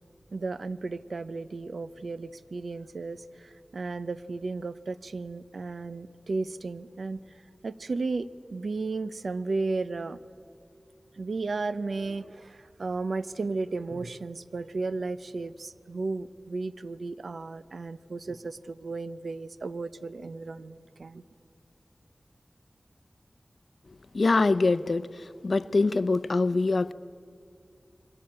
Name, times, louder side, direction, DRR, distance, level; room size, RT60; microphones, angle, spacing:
voice 1, 0.3-7.2 7.6-10.2 11.2-21.2, right 3 dB, 90° right, 0.7 m, -34 dB
voice 2, 24.1-25.1 25.4-26.9, left 3 dB, 70° left, 0.7 m, -24 dB
29.0 x 23.0 x 8.8 m
wide cardioid pair, 55°, 0 cm